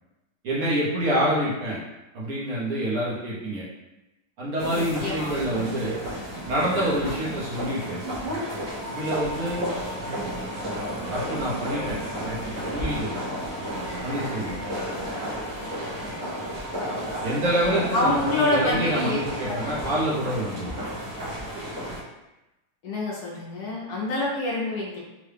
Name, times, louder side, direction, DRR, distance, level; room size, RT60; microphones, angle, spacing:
voice 1, 0.4-1.8 2.1-3.7 4.4-6.0 6.4-8.0 8.9-9.6 11.1-13.1 14.0-14.6 17.2-20.7, right 1 dB, 60° right, -7 dB, 1.2 m, -27 dB
sound 1, 4.6-22.0, equal, 30° right, 1.0 m, -33 dB
voice 2, 4.7-5.3 17.9-19.2 19.4-19.5 22.8-25.0, left 2 dB, 65° left, -4 dB, 1.1 m, -26 dB
sound 2, 8.8-21.0, equal, 90° left, 1.3 m, -43 dB
3.7 x 2.2 x 3.3 m, 0.98 s
omnidirectional pair, 1.9 m